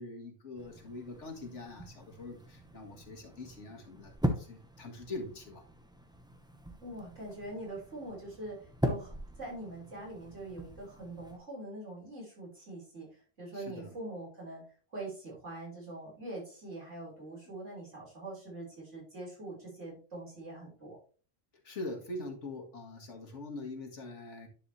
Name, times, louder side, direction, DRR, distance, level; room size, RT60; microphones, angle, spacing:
voice 1, 0.0-5.6 13.5-14.0 21.6-24.5, left 2 dB, 65° left, 1 dB, 2.1 m, -43 dB
sound 1, 0.6-11.4, equal, 5° right, 0.9 m, -40 dB
voice 2, 6.8-14.6 14.9-21.0, right 2 dB, 70° right, -4 dB, 4.8 m, -43 dB
10.5 x 4.9 x 3.2 m, 0.39 s
omnidirectional pair, 1.3 m